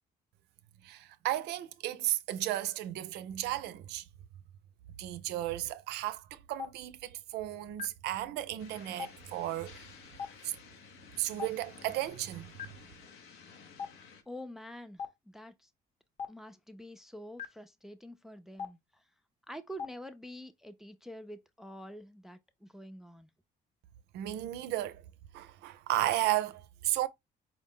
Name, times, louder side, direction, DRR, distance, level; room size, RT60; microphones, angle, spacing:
voice 1, 0.8-4.0 5.0-9.8 10.4-10.5 11.2-12.5 24.1-25.0 25.3-27.1, right 14 dB, 80° right, 0.5 m, -34 dB
Stream, 6.6-6.7 7.8-7.9 9.0-9.1 10.2-10.3 11.4-11.5 12.6-12.7 13.8-13.9 15.0-15.1 16.2-16.3 17.4-17.5 18.6-18.7 19.8-19.9, left 6 dB, 40° left, 0.8 m, -38 dB
sound 1, 8.6-14.2, left 5 dB, 90° left, 1.0 m, -54 dB
voice 2, 14.3-15.7 16.3-19.0 19.5-23.3, equal, ahead, 0.4 m, -47 dB
4.8 x 2.0 x 3.6 m
cardioid pair, 110°, 17 cm